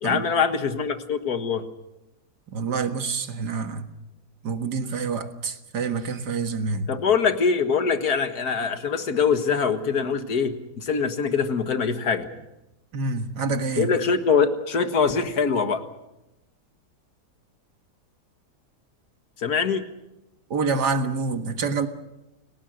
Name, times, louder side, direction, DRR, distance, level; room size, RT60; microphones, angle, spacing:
voice 1, 0.0-1.6 6.9-12.3 13.8-15.8 19.4-19.8, left 5 dB, 65° left, 8 dB, 2.1 m, -23 dB
voice 2, 2.5-3.8 4.4-6.9 12.9-13.9 20.5-21.9, right 4 dB, 75° right, 8 dB, 2.1 m, -27 dB
30.0 x 18.0 x 6.5 m, 0.92 s
omnidirectional pair, 1.8 m